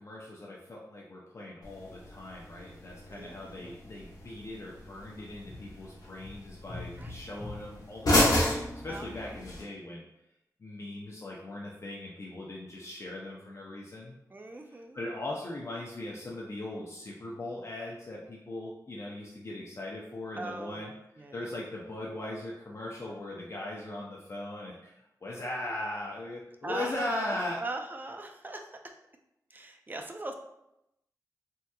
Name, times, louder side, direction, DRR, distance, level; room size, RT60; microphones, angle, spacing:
voice 1, 0.0-8.5 8.8-10.0 10.6-14.2 14.9-20.9 21.3-27.6, left 1 dB, 45° left, -3 dB, 0.5 m, -39 dB
sound 1, 1.6-9.6, left 1 dB, 70° left, 1.0 m, -32 dB
voice 2, 3.1-3.7 7.0-7.5 8.9-9.4 14.3-15.0 20.4-20.9 21.2-21.4 26.6-28.9 29.5-30.3, right 2 dB, 30° right, 4 dB, 0.4 m, -40 dB
3.5 x 2.8 x 2.2 m, 0.84 s
wide cardioid pair, 95°, 7 cm